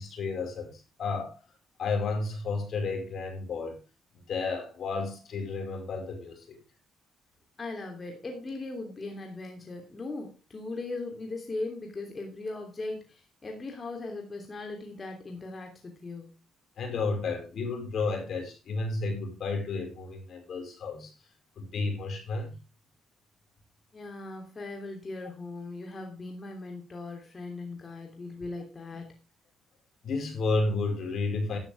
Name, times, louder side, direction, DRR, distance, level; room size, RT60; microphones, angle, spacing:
voice 1, 0.0-1.4 1.8-3.8 4.3-6.6 16.8-21.1 21.6-22.5 30.0-31.6, left 3 dB, 60° left, 4 dB, 5.0 m, -32 dB
voice 2, 7.6-16.4 23.9-29.2, left 2 dB, 30° left, 2 dB, 3.1 m, -39 dB
13.0 x 11.5 x 3.5 m, 0.27 s
cardioid pair, 90°, 0 cm